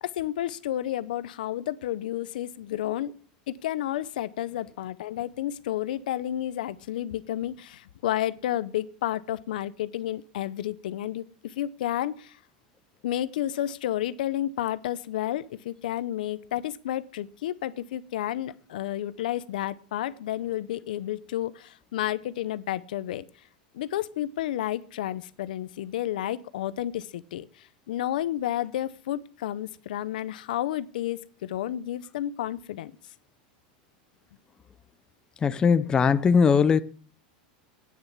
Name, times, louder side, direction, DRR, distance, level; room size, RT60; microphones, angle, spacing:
voice 1, 0.0-3.1 3.5-12.4 13.0-23.2 23.7-27.5 27.9-32.9, left 12 dB, 80° left, 0.7 m, -31 dB
voice 2, 35.4-36.8, left 6 dB, 15° left, 0.5 m, -20 dB
9.6 x 8.8 x 6.0 m
supercardioid pair, 145°, 5 cm